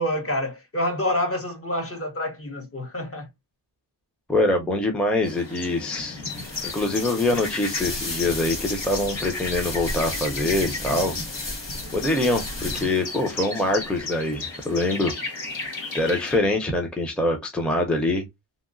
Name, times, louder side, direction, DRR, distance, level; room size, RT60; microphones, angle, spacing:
voice 1, 0.0-3.3, left 1 dB, 30° left, 0.8 m, -27 dB
voice 2, 4.3-6.2 6.7-11.2 11.9-15.1 15.9-18.2, left 2 dB, ahead, 0.6 m, -24 dB
sound 1, 5.2-16.4, left 3 dB, 85° left, 1.6 m, -34 dB
sound 2, 6.2-13.1, left 2 dB, 70° left, 1.5 m, -34 dB
2.8 x 2.8 x 2.5 m
wide cardioid pair, 145°, 45 cm